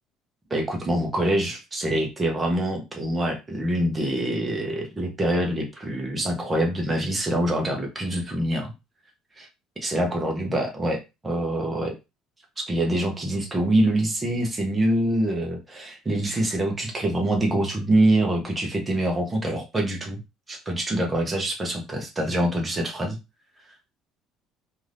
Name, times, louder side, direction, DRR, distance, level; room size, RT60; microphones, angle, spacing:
voice 1, 0.5-8.7 9.4-9.5 9.8-12.0 12.7-20.2 20.5-23.2, right 1 dB, 15° right, 0 dB, 0.7 m, -25 dB
2.6 x 2.4 x 3.3 m, 0.25 s
cardioid pair, 165°, 0 cm